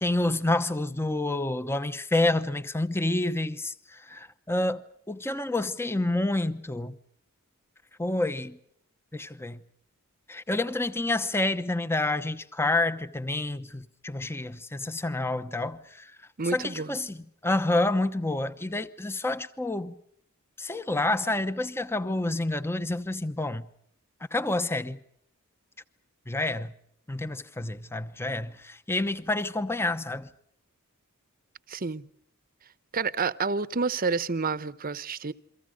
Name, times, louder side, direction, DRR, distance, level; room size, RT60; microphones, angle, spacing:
voice 1, 0.0-6.9 8.0-8.6 9.1-9.6 10.3-16.1 16.4-20.0 20.6-23.6 24.3-25.0 26.3-26.7 27.1-30.3, left 2 dB, 10° left, 0.9 m, -28 dB
voice 2, 16.4-16.9 31.7-32.1 32.9-35.3, right 4 dB, 40° right, 0.9 m, -29 dB
29.5 x 24.0 x 5.2 m
head